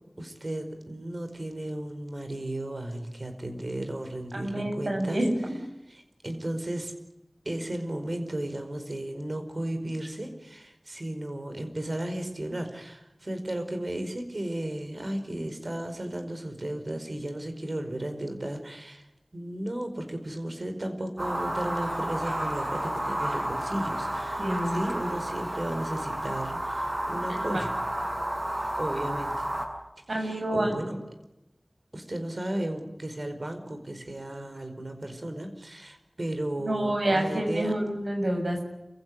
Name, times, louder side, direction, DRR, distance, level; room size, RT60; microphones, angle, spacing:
voice 1, 0.2-5.2 5.9-6.9 7.4-19.1 19.3-27.7 28.8-29.5 30.1-31.0 31.9-37.7, right 1 dB, 60° right, 7 dB, 4.9 m, -34 dB
voice 2, 4.3-5.5 24.4-24.8 27.3-27.6 30.1-30.7 36.6-38.6, right 1 dB, 85° right, 2 dB, 7.1 m, -28 dB
sound 1, 21.2-29.7, right 1 dB, 40° right, 7.6 m, -31 dB
28.5 x 16.0 x 9.9 m, 0.94 s
wide cardioid pair, 45°, 0 cm